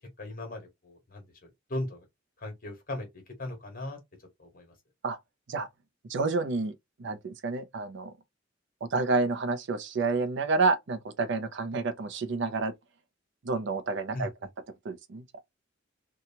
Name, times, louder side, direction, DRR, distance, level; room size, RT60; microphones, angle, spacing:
voice 1, 0.2-2.1 2.4-4.0 4.4-4.7 14.1-14.3, left 1 dB, 45° left, 1.3 m, -38 dB
voice 2, 6.1-6.7 7.0-8.1 8.8-12.7 13.4-14.3 14.8-15.2, right 3 dB, 60° right, 0.5 m, -29 dB
2.8 x 2.3 x 2.7 m
head